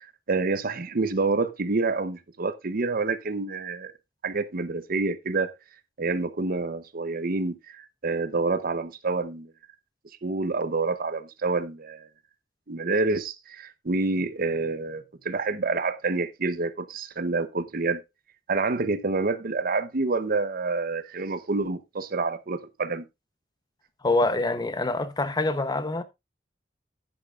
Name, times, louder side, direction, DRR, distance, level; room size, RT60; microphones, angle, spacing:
voice 1, 0.0-3.9 4.2-5.5 6.0-9.5 10.2-12.1 12.7-18.0 18.5-23.0, right 3 dB, 50° right, 0.8 m, -28 dB
voice 2, 24.0-26.0, left 2 dB, 20° left, 0.8 m, -25 dB
10.5 x 10.0 x 2.4 m
head